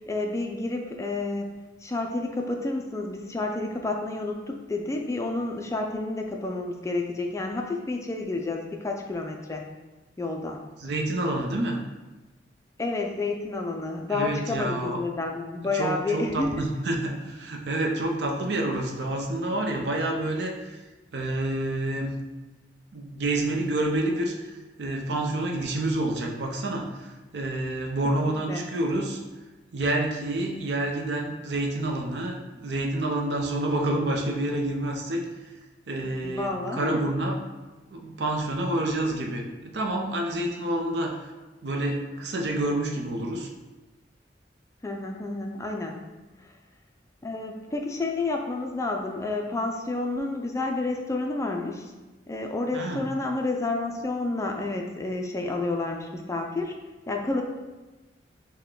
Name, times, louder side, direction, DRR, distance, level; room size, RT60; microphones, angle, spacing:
voice 1, 0.1-1.5 1.8-9.6 10.2-10.6 12.8-16.6 18.4-18.5 28.2-28.6 36.0-37.0 44.8-46.1 47.2-51.9 52.3-56.8 57.1-57.4, left 2 dB, 15° left, 2 dB, 0.3 m, -30 dB
voice 2, 10.8-11.8 14.1-15.0 15.7-20.8 21.1-22.1 22.9-29.2 29.7-32.4 32.6-35.2 35.9-37.4 37.9-41.2 41.6-43.5 52.7-53.0, right 1 dB, 65° right, 2 dB, 0.6 m, -28 dB
5.6 x 2.2 x 3.7 m, 1.2 s
head